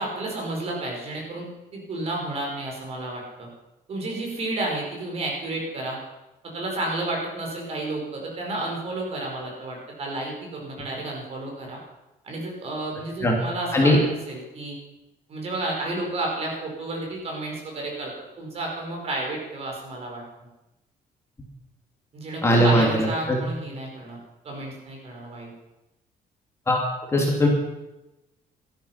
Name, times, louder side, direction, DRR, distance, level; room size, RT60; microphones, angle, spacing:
voice 1, 0.0-3.5 3.9-6.0 6.5-11.8 12.2-13.9 14.3-14.8 15.3-20.2 22.1-24.2 24.4-25.5, right 2 dB, 40° right, 0 dB, 4.9 m, -31 dB
voice 2, 22.4-23.4 26.7-27.5, equal, 15° left, -1 dB, 2.8 m, -20 dB
17.5 x 13.0 x 5.9 m, 0.98 s
cardioid pair, 170°, 16 cm